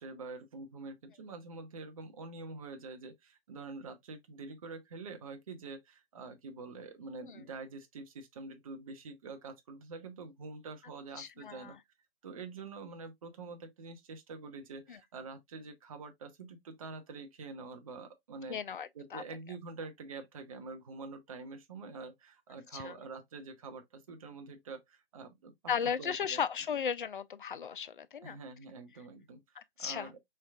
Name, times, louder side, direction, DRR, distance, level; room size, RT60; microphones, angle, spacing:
voice 1, 0.0-11.7 12.2-18.6 18.9-25.5 26.0-26.4 28.2-30.2, right 3 dB, 35° right, 0.7 m, -46 dB
voice 2, 11.2-11.8 14.9-15.0 18.5-19.2 22.7-22.9 25.7-28.4 29.6-30.1, left 7 dB, 55° left, 0.5 m, -36 dB
4.4 x 3.3 x 2.3 m
figure-of-eight pair, 145°, 31 cm